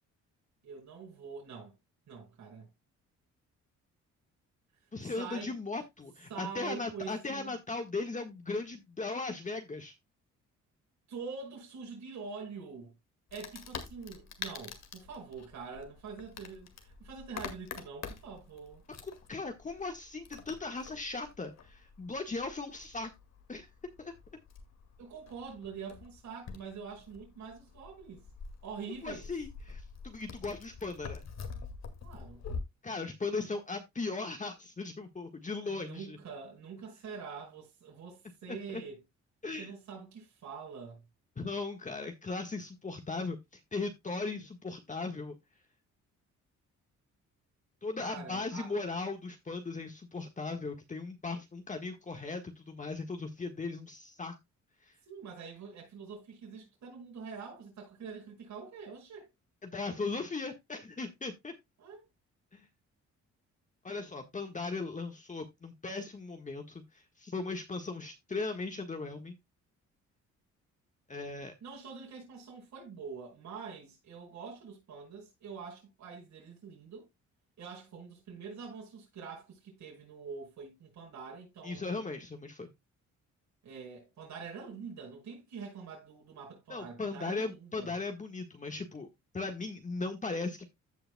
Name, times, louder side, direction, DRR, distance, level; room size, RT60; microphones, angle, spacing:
voice 1, 0.6-1.7 2.1-2.7 5.0-5.5 6.3-7.5 11.1-12.9 13.3-18.8 25.0-28.2 28.6-29.3 32.0-32.4 35.6-39.0 39.6-41.0 48.0-48.7 55.1-59.3 61.8-62.0 71.6-77.1 77.6-82.1 83.6-87.9, right 5 dB, 65° right, 6.1 m, -45 dB
voice 2, 4.9-9.9 19.0-23.1 23.5-23.7 24.0-24.1 29.0-31.2 32.8-36.2 38.5-38.8 39.4-39.7 41.4-45.3 47.8-54.3 54.8-54.9 59.6-61.5 62.5-62.7 63.8-69.4 71.1-71.5 81.6-82.7 86.7-89.1 89.3-90.7, left 3 dB, 25° left, 1.5 m, -38 dB
Wood, 13.3-32.6, left 5 dB, 60° left, 2.1 m, -46 dB
15.5 x 5.6 x 2.2 m
cardioid pair, 90°, 30 cm